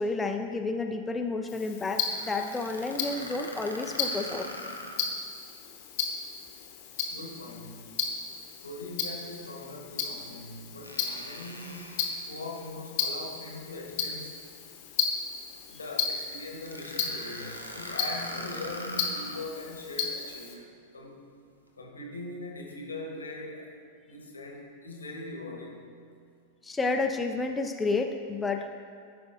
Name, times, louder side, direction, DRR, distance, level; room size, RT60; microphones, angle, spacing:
voice 1, 0.0-4.5 26.6-28.7, left 3 dB, 10° left, 4 dB, 0.4 m, -30 dB
Tick-tock, 1.5-20.5, left 6 dB, 50° left, 0.8 m, -35 dB
sound 1, 2.1-5.2 5.6-5.7 9.4-9.5 10.8-12.7 16.7-19.5, equal, 85° right, 0.6 m, -42 dB
voice 2, 7.1-7.9 8.6-14.4 15.7-21.2 21.8-23.8 24.1-25.8, left 2 dB, 75° left, 0 dB, 1.1 m, -41 dB
12.5 x 5.0 x 2.5 m, 2.2 s
figure-of-eight pair, 90°, 0 cm